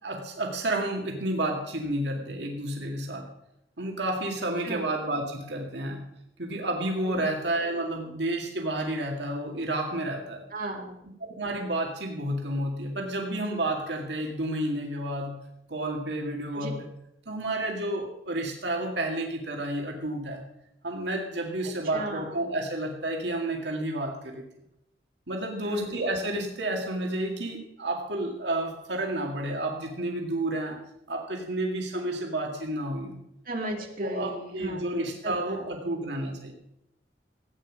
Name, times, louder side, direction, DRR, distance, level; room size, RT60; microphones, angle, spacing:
voice 1, 0.0-3.3 3.8-6.0 6.4-10.5 11.0-15.4 15.7-16.9 17.3-20.5 20.8-24.4 25.3-30.8 31.1-33.2 34.0-36.5, right 1 dB, 75° right, 1 dB, 2.1 m, -31 dB
voice 2, 10.5-11.0 16.5-16.7 21.9-22.6 25.6-26.0 33.5-35.7, right 1 dB, 50° right, 0 dB, 2.5 m, -36 dB
16.0 x 9.3 x 6.2 m, 0.82 s
head